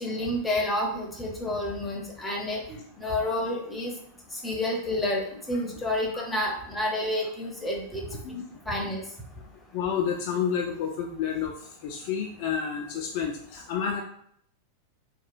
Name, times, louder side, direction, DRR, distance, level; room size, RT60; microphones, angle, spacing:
voice 1, 0.0-3.9 4.4-8.0 8.7-9.0, left 1 dB, 10° left, -1 dB, 0.7 m, -29 dB
voice 2, 9.5-14.0, left 7 dB, 45° left, 1 dB, 0.3 m, -30 dB
2.9 x 2.1 x 2.4 m, 0.66 s
figure-of-eight pair, 90°, 0 cm